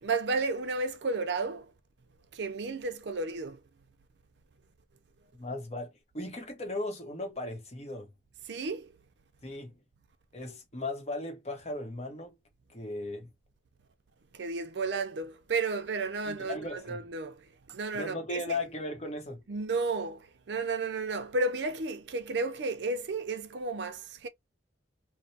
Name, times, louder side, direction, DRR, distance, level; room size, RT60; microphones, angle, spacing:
voice 1, 0.0-1.7 2.3-3.6 8.5-8.9 14.3-18.6 19.5-24.3, right 3 dB, 70° right, 0.5 m, -33 dB
voice 2, 5.3-8.1 9.4-9.8 10.3-12.3 12.7-13.3 16.2-17.0 17.9-19.4, left 2 dB, 35° left, 0.8 m, -37 dB
3.0 x 2.0 x 2.6 m
head